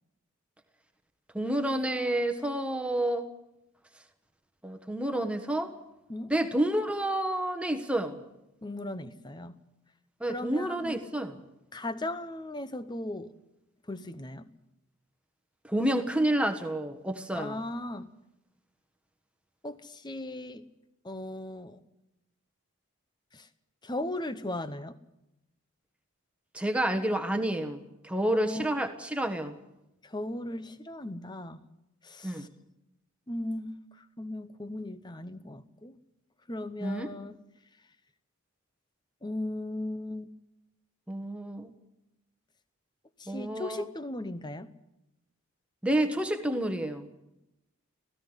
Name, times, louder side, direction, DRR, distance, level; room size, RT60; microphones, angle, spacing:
voice 1, 1.3-3.3 4.6-5.7 6.3-8.2 10.2-11.4 15.7-17.6 26.5-29.6 32.2-32.5 36.8-37.1 41.1-41.7 43.3-43.9 45.8-47.1, right 1 dB, 5° right, 6 dB, 1.3 m, -29 dB
voice 2, 8.6-9.6 10.3-11.1 11.7-13.3 13.9-14.5 17.3-18.1 19.6-20.6 21.0-21.8 23.3-23.5 23.8-25.0 28.3-28.7 30.0-31.6 32.0-32.5 33.3-36.0 36.5-37.4 39.2-40.3 43.2-44.7, left 1 dB, 20° left, 12 dB, 0.8 m, -37 dB
17.0 x 16.0 x 9.8 m, 0.92 s
head